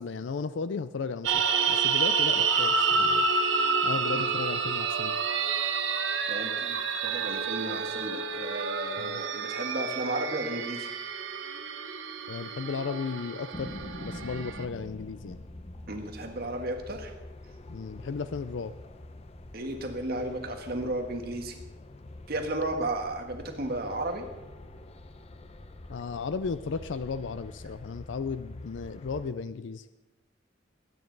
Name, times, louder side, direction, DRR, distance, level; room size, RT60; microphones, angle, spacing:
voice 1, 0.0-3.3 3.8-5.2 9.0-9.2 12.3-13.7 14.0-15.4 17.7-18.7 25.9-29.9, left 5 dB, 75° left, 12 dB, 0.4 m, -35 dB
sound 1, 1.2-14.6, right 5 dB, 80° right, 1.0 m, -29 dB
voice 2, 6.3-10.9 15.9-17.1 19.5-21.5 22.3-24.2, right 1 dB, 55° right, 4 dB, 1.6 m, -34 dB
sound 2, 13.5-29.3, left 1 dB, 35° left, 0.7 m, -45 dB
20.0 x 9.3 x 4.0 m, 1.0 s
head